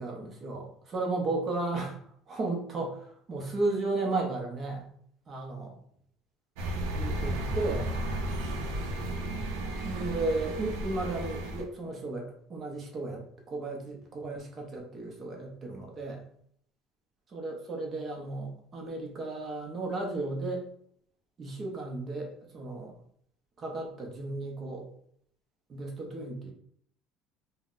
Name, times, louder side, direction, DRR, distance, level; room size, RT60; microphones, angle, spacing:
voice 1, 0.0-2.0 2.3-4.8 5.3-5.8 6.9-7.9 9.8-16.2 17.3-20.6 21.4-22.9 23.6-24.9 25.7-26.5, right 2 dB, 25° right, 1 dB, 0.6 m, -34 dB
sound 1, 6.6-11.6, right 1 dB, 90° right, 0.5 m, -33 dB
3.9 x 2.1 x 2.4 m, 0.64 s
cardioid pair, 170°, 0 cm